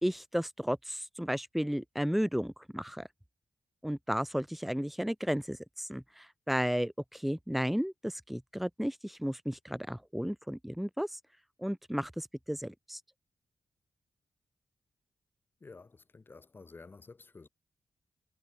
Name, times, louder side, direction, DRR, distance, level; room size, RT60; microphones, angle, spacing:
voice 1, 0.0-3.1 3.8-11.2 11.6-13.0, equal, ahead, 2.2 m, -33 dB
voice 2, 15.6-17.5, left 3 dB, 40° left, 5.2 m, -52 dB
cardioid pair, 65°, 5 cm